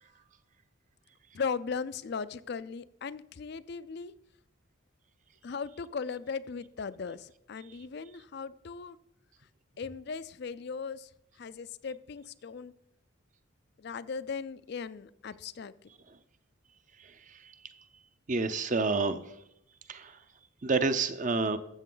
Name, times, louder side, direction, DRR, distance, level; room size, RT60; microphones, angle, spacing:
voice 1, 1.3-4.1 5.4-9.0 9.8-11.1 11.4-12.7 13.8-15.7, left 5 dB, 50° left, 16 dB, 0.4 m, -38 dB
voice 2, 18.3-19.2 19.9-20.2 20.6-21.6, right 3 dB, 35° right, 11 dB, 0.6 m, -28 dB
13.5 x 7.4 x 3.9 m, 0.80 s
head